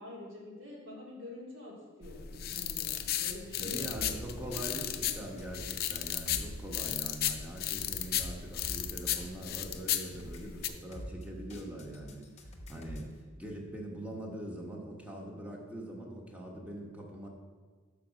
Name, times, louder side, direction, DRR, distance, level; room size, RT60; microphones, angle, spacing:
voice 1, 0.0-5.1, left 1 dB, 90° right, -4 dB, 2.3 m, -46 dB
sound 1, 2.0-10.7, left 11 dB, 50° left, 0.4 m, -35 dB
voice 2, 3.6-17.3, right 1 dB, 5° right, -2 dB, 1.1 m, -43 dB
sound 2, 3.9-13.1, equal, 35° left, 0.8 m, -46 dB
6.0 x 4.8 x 6.3 m, 1.5 s
head